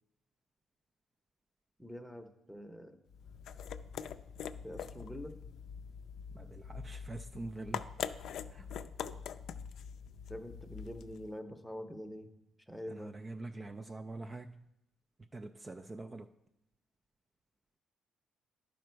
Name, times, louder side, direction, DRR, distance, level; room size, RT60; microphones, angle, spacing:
voice 1, 1.8-3.0 4.6-5.3 10.3-12.3 12.7-13.2, equal, 5° left, 0.7 m, -45 dB
sound 1, 3.1-11.3, left 8 dB, 75° left, 0.3 m, -44 dB
voice 2, 6.3-7.9 8.5-8.7 12.9-14.6 15.3-16.3, right 2 dB, 25° right, 0.3 m, -45 dB
11.0 x 5.1 x 4.5 m
cardioid pair, 90°, 0 cm